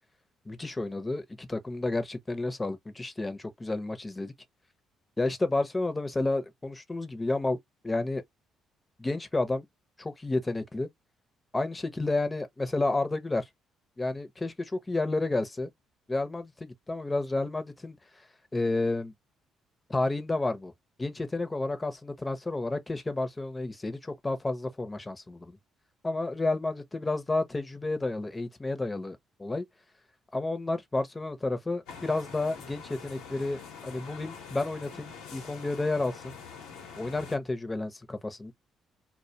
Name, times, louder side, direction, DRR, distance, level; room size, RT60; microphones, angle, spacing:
voice 1, 0.5-4.3 5.2-7.6 7.8-8.2 9.0-9.7 10.0-10.9 11.5-13.5 14.0-15.7 16.1-18.0 18.5-19.1 19.9-20.7 21.0-25.6 26.0-29.6 30.3-36.4 37.0-38.5, left 2 dB, 20° left, 0.6 m, -31 dB
sound 1, 31.9-37.4, left 6 dB, 90° left, 0.8 m, -45 dB
2.2 x 2.2 x 2.7 m
supercardioid pair, 70°, 0 cm